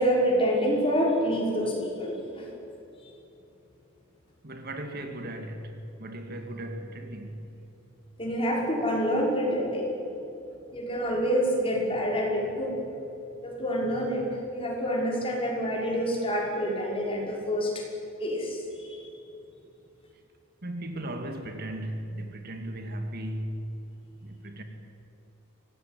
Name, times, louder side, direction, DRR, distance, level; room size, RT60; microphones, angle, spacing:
voice 1, 0.0-2.4 8.2-9.9 10.7-12.8 13.4-14.2 14.5-17.7 18.2-18.6 18.8-19.0, equal, 25° left, 5.8 m, -27 dB
voice 2, 4.4-7.5 20.6-23.7 24.2-24.6, right 1 dB, 50° right, 2.3 m, -36 dB
24.5 x 18.0 x 9.4 m
head